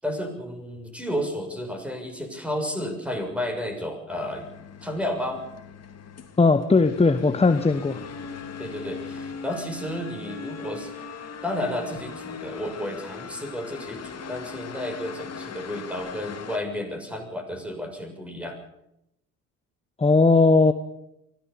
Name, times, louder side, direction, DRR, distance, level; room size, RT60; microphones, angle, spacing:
voice 1, 0.0-4.5 4.8-5.4 8.6-10.9 11.4-18.6, left 1 dB, 5° right, 4 dB, 6.9 m, -32 dB
sound 1, 4.1-16.6, left 5 dB, 35° left, 2.9 m, -39 dB
voice 2, 6.4-8.0 20.0-20.7, left 3 dB, 15° left, 10 dB, 1.3 m, -18 dB
24.0 x 17.0 x 7.1 m, 0.84 s
hypercardioid pair, 65°, 42 cm